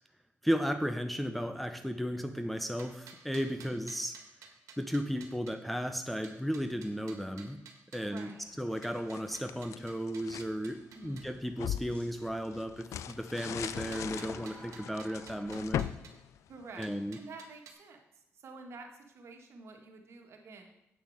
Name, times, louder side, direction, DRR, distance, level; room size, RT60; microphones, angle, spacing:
voice 1, 0.4-4.2 4.8-7.6 7.9-8.3 8.6-15.9 16.8-17.2, equal, ahead, 6 dB, 0.6 m, -34 dB
sound 1, 2.6-5.5 6.2-8.3 8.8-11.3 13.1-16.1 16.8-17.7, right 6 dB, 90° right, 1.5 m, -54 dB
sound 2, 6.7-6.8 7.4-7.5 11.9-12.1 13.3-15.6, left 1 dB, 25° left, 2.5 m, -51 dB
voice 2, 8.0-8.5 10.9-11.4 16.5-18.0 18.3-20.7, right 3 dB, 60° right, 3 dB, 1.7 m, -49 dB
sound 3, 8.5-10.5 11.0-17.1, left 11 dB, 80° left, 0.4 m, -40 dB
8.5 x 6.8 x 6.4 m, 0.85 s
cardioid pair, 115°, 5 cm